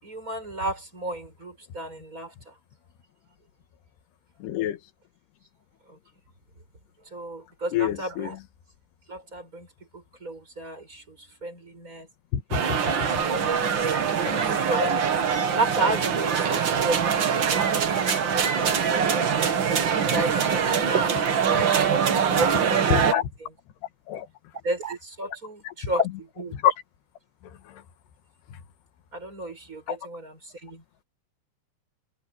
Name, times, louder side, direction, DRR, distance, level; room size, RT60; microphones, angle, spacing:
voice 1, 0.0-2.5 5.9-6.0 7.1-8.4 9.1-9.7 9.9-12.1 12.7-13.0 13.3-13.4 13.9-15.0 15.5-19.6 20.1-23.2 24.6-26.5 29.1-30.8, right 1 dB, 20° right, 7.1 m, -33 dB
voice 2, 4.4-4.8 7.7-8.4 12.3-13.2 14.2-14.4 21.5-21.6 22.9-23.3 24.1-24.3 25.6-25.7 26.5-26.7 27.7-27.8 29.9-30.0, left 10 dB, 80° left, 3.5 m, -27 dB
sound 1, 12.5-23.1, right 7 dB, 75° right, 1.0 m, -23 dB
omnidirectional pair, 4.7 m